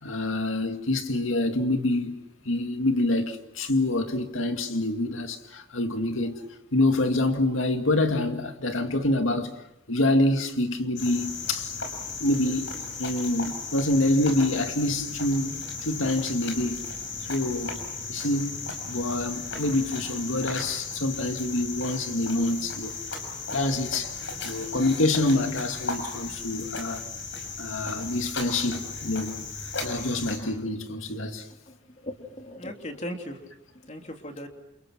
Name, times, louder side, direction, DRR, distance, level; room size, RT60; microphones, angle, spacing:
voice 1, 0.0-6.4 6.7-9.6 9.9-11.8 12.2-12.7 13.0-16.9 17.3-17.8 18.1-23.0 23.5-24.2 24.4-27.0 27.6-29.3 29.8-31.5, left 2 dB, 85° left, 2.2 m, -26 dB
Cricket, 11.0-30.4, left 4 dB, 65° left, 5.8 m, -35 dB
voice 2, 31.7-33.4 33.8-34.5, left 1 dB, 35° left, 3.2 m, -38 dB
29.0 x 29.0 x 6.1 m
head